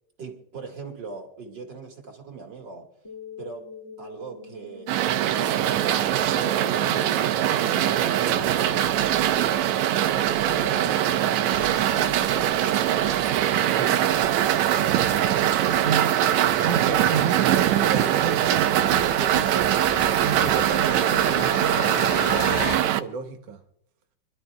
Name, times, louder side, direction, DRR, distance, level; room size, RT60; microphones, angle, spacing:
voice 1, 0.2-2.9 3.4-3.7 4.0-6.4 6.7-8.8 9.1-12.1, right 5 dB, 40° right, 2.2 m, -40 dB
sound 1, 3.0-18.1, left 1 dB, 10° left, 2.2 m, -41 dB
sound 2, 4.9-23.0, right 12 dB, 85° right, 2.0 m, -22 dB
sound 3, 11.5-22.8, left 6 dB, 85° left, 2.8 m, -38 dB
voice 2, 14.8-15.3 15.8-19.8 20.2-23.6, right 6 dB, 60° right, 2.3 m, -32 dB
26.0 x 12.0 x 2.3 m
omnidirectional pair, 3.3 m